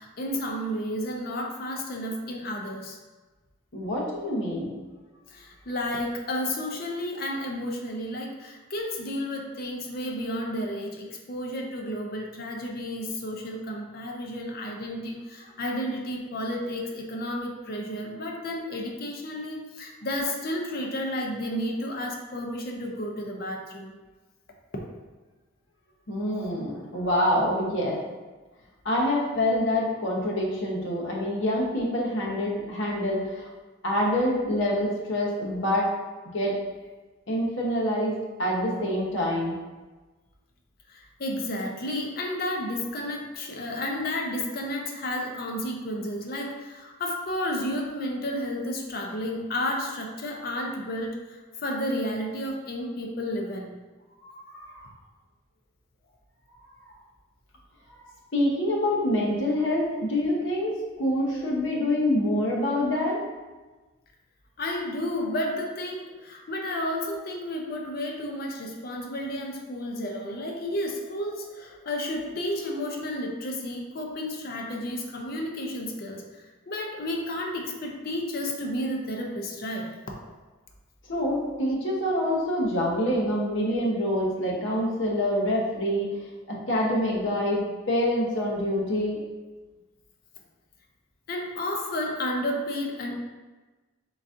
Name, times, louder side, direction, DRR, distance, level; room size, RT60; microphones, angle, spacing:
voice 1, 0.0-3.0 5.3-23.9 40.9-51.2 51.6-53.7 64.6-76.2 76.7-79.9 91.3-93.2, left 1 dB, 45° left, 1 dB, 0.5 m, -32 dB
voice 2, 3.7-4.8 26.1-28.0 28.8-33.5 33.8-35.9 36.3-36.5 37.3-39.6 54.2-54.8 57.9-58.0 58.3-63.2 81.1-86.2 86.5-89.2, left 1 dB, 60° left, -3 dB, 0.9 m, -26 dB
3.9 x 3.6 x 2.5 m, 1.2 s
head